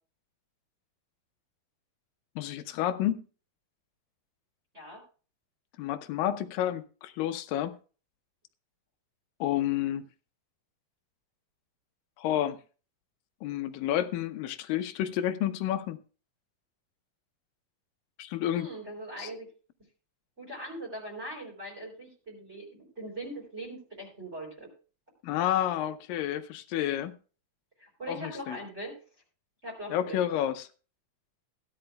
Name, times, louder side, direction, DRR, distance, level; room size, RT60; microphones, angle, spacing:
voice 1, 2.4-3.2 5.8-7.8 9.4-10.0 12.2-12.6 13.4-16.0 18.2-18.7 19.2-19.3 25.2-27.1 28.1-28.6 29.9-30.7, left 11 dB, 80° left, 2.5 m, -30 dB
voice 2, 18.5-19.5 20.4-22.7 23.0-24.7 27.8-29.0 29.6-30.2, right 1 dB, 20° right, 3.8 m, -40 dB
17.0 x 11.0 x 2.2 m
omnidirectional pair, 4.0 m